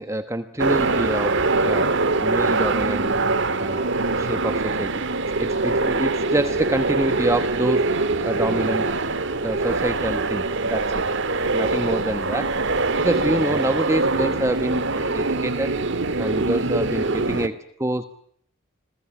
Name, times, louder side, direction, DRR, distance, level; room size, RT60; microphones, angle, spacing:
voice 1, 0.0-3.2 3.6-5.0 5.4-8.9 9.4-11.0 11.5-15.8 16.2-18.0, right 1 dB, 15° right, 10 dB, 1.1 m, -27 dB
sound 1, 0.6-17.5, right 3 dB, 60° right, 1.8 m, -23 dB
27.5 x 22.0 x 8.7 m, 0.64 s
head